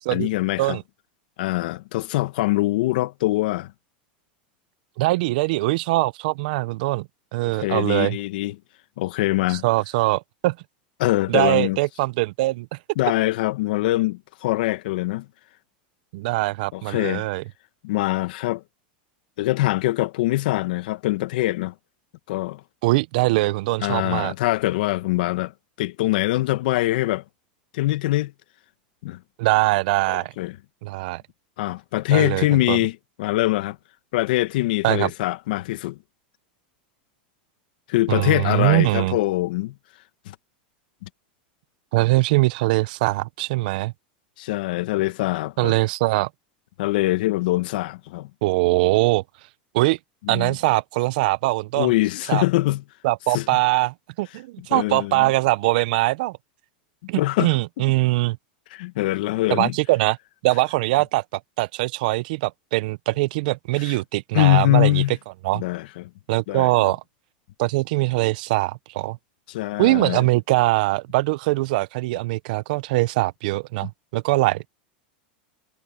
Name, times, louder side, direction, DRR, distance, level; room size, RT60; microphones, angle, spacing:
voice 1, 0.1-0.8 1.4-3.7 7.5-8.5 9.0-9.6 11.0-11.8 12.9-15.2 16.7-17.2 17.8-18.6 19.4-21.7 22.3-22.6 23.8-25.5 25.8-27.2 27.7-28.3 29.0-29.2 30.1-30.6 31.6-33.8 34.1-36.0 37.9-39.7 40.3-40.4 41.0-41.1 44.4-45.7 46.8-48.3 50.3-50.6 51.8-52.8 53.3-53.5 54.7-55.3 57.2-57.5 58.7-59.7 63.8-64.0 64.3-65.2 65.5-66.1 66.5-66.9 69.5-70.3, left 17 dB, 70° left, 1.5 m, -23 dB
voice 2, 5.0-8.2 9.5-10.6 11.3-12.8 16.1-17.4 22.8-24.3 29.4-30.3 30.8-31.2 32.1-32.8 34.8-35.1 38.1-39.2 41.9-43.9 45.6-46.3 48.4-49.2 49.7-50.0 50.3-51.9 52.3-52.4 53.0-56.4 57.1-58.4 59.5-60.2 60.4-61.2 61.6-65.0 65.4-65.6 66.3-67.0 67.6-69.2 69.8-74.6, right 20 dB, 65° right, 0.8 m, -22 dB
hypercardioid pair, 115°, 5 cm